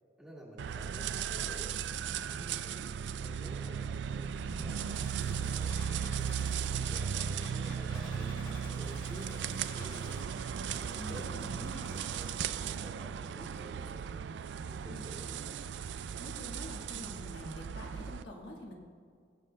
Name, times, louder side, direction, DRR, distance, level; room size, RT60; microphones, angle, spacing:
voice 1, 0.2-1.7 2.3-6.4 6.9-9.5 9.7-10.3 10.7-11.4 11.9-12.3 12.6-14.1 14.6-15.9, equal, 5° right, -5 dB, 1.8 m, -51 dB
sound 1, 0.6-18.2, right 7 dB, 65° right, 0.3 m, -36 dB
sound 2, 4.4-12.4, left 1 dB, 25° left, 1.1 m, -51 dB
voice 2, 10.9-11.9 14.9-15.0 16.2-18.8, left 1 dB, 65° left, -1 dB, 1.4 m, -46 dB
21.0 x 7.3 x 2.2 m, 2.2 s
head